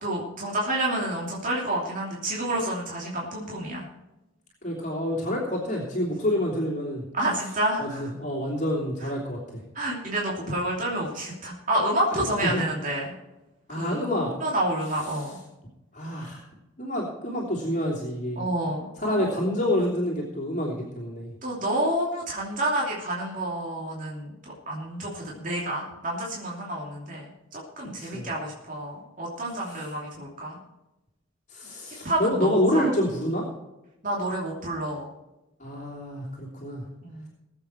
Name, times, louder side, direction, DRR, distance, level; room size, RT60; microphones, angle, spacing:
voice 1, 0.0-3.8 7.1-8.1 9.7-13.1 13.7-14.0 14.4-15.3 18.4-18.9 19.2-19.3 21.4-24.3 24.7-30.6 32.0-32.8 34.0-35.1 37.0-37.3, right 1 dB, 40° right, -3 dB, 2.9 m, -29 dB
voice 2, 4.6-7.0 7.8-9.6 12.1-12.6 13.7-14.3 15.1-15.3 15.9-16.4 16.8-18.5 19.0-21.3 28.0-28.3 29.7-29.8 31.5-33.5 35.6-36.8, left 1 dB, 35° left, -3 dB, 3.0 m, -28 dB
19.0 x 8.1 x 4.5 m, 1.0 s
head